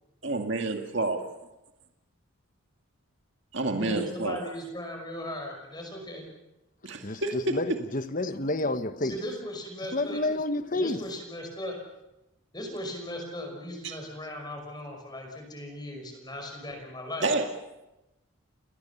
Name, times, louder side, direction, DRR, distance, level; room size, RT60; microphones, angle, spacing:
voice 1, 0.2-1.2 3.5-4.4 6.8-7.6 13.8-13.9 17.2-17.5, right 2 dB, 55° right, 2.1 m, -29 dB
voice 2, 3.7-6.2 9.0-10.2 10.8-11.8 12.5-17.3, left 1 dB, 20° left, 5.6 m, -37 dB
voice 3, 7.0-9.2 9.9-11.0, left 2 dB, 40° left, 1.2 m, -29 dB
29.5 x 20.0 x 7.1 m
head